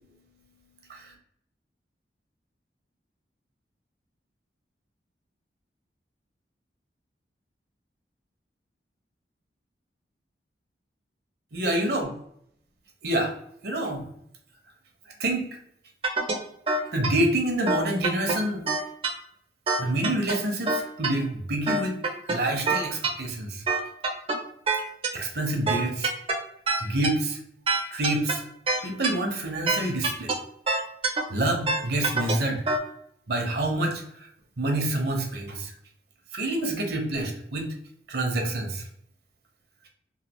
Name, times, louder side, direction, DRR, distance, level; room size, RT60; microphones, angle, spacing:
voice 1, 11.5-12.1 13.0-13.3 13.6-14.1 15.2-15.5 16.9-18.6 19.8-22.0 22.3-23.6 25.1-26.1 26.8-27.4 27.9-28.4 28.8-30.3 31.3-32.6 33.3-34.3 34.6-35.7 36.3-37.7 38.1-38.8, right 1 dB, 65° right, 2 dB, 0.7 m, -27 dB
sound 1, 16.0-16.3 16.7-17.1 17.7-18.3 18.7-19.1 19.7-20.3 20.7-21.1 21.7-22.3 22.7-23.1 23.7-24.3 24.7-25.1 25.7-26.3 26.7-27.1 27.7-28.3 28.7-29.1 29.7-30.3 30.7-31.2 31.7-32.3 32.7-32.8, right 3 dB, 35° right, 0.5 m, -24 dB
3.1 x 2.4 x 2.9 m, 0.70 s
head